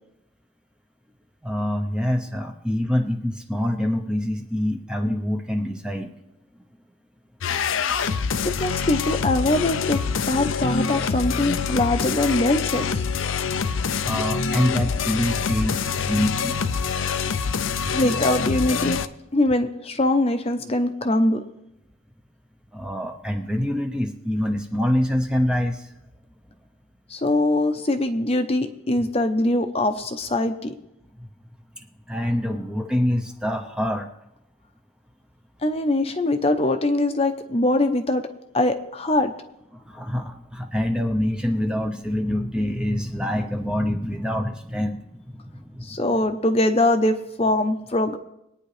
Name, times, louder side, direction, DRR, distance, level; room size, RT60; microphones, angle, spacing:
voice 1, 1.4-6.1 14.0-16.6 17.3-17.9 22.7-25.9 29.0-29.1 31.2-31.3 31.8-34.1 39.7-46.0, left 1 dB, 5° right, 3 dB, 0.7 m, -26 dB
sound 1, 7.4-19.1, left 5 dB, 70° left, 0.5 m, -25 dB
voice 2, 8.4-10.0 10.2-13.0 17.9-19.0 19.3-21.4 27.1-30.7 35.6-38.2 38.5-39.3 45.8-48.2, left 1 dB, 30° left, 6 dB, 0.7 m, -22 dB
22.5 x 9.4 x 3.3 m, 0.85 s
head